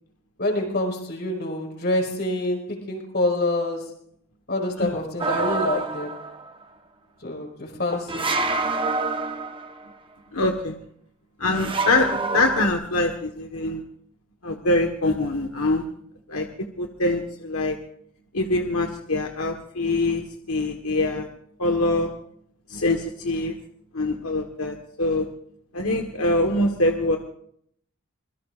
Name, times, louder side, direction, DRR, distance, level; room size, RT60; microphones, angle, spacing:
voice 1, 0.4-3.9 4.5-6.1 7.2-8.3, left 1 dB, 50° left, 1 dB, 5.4 m, -26 dB
sound 1, 5.2-6.5 8.1-9.9 11.5-12.7, right 3 dB, 25° right, 1.0 m, -27 dB
voice 2, 10.3-10.8 11.4-13.8 14.4-15.8 16.3-17.8 18.3-21.3 21.6-22.1 22.7-23.6 23.9-25.3 25.7-27.2, left 2 dB, 80° left, 3 dB, 1.4 m, -24 dB
25.5 x 22.5 x 2.5 m, 0.68 s
head